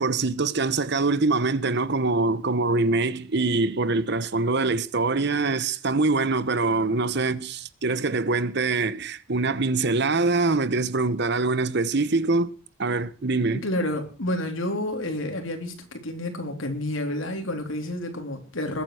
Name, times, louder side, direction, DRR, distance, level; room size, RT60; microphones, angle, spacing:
voice 1, 0.0-12.5 12.8-13.6, right 3 dB, 60° right, 1.0 m, -24 dB
voice 2, 13.6-18.8, left 1 dB, 90° left, 3.8 m, -29 dB
21.0 x 9.3 x 4.9 m
head